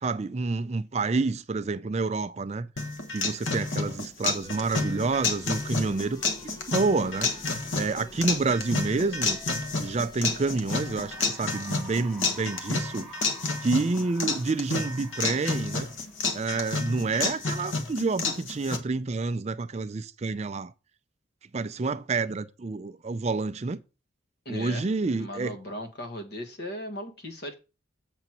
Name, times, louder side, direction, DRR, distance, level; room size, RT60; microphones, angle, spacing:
voice 1, 0.0-2.7 3.1-6.2 6.7-9.4 9.8-13.1 13.6-15.9 16.3-20.7 21.5-23.8 24.5-25.6, right 3 dB, 35° right, 0.4 m, -28 dB
sound 1, 2.8-18.8, left 3 dB, 80° left, 1.2 m, -30 dB
sound 2, 4.4-11.3, left 1 dB, 20° left, 0.8 m, -47 dB
Cheering / Applause, 10.3-16.9, right 2 dB, ahead, 1.3 m, -49 dB
voice 2, 24.4-24.9 25.2-27.5, equal, 55° left, 1.5 m, -37 dB
7.8 x 4.0 x 5.9 m
head